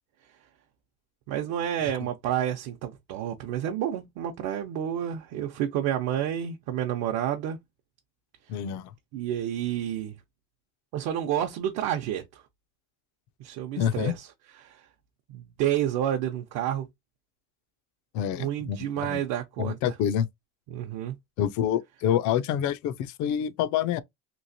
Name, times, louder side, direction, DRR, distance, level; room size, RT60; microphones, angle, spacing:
voice 1, 1.3-7.6 9.1-10.2 10.9-12.4 13.4-14.3 14.6-14.8 15.3-16.9 18.4-19.8 20.7-21.2, right 10 dB, 60° right, 0.7 m, -29 dB
voice 2, 8.5-8.9 13.8-14.1 18.1-19.2 19.6-20.3 21.4-24.0, left 10 dB, 55° left, 0.5 m, -27 dB
3.1 x 2.8 x 2.6 m
cardioid pair, 160°, 36 cm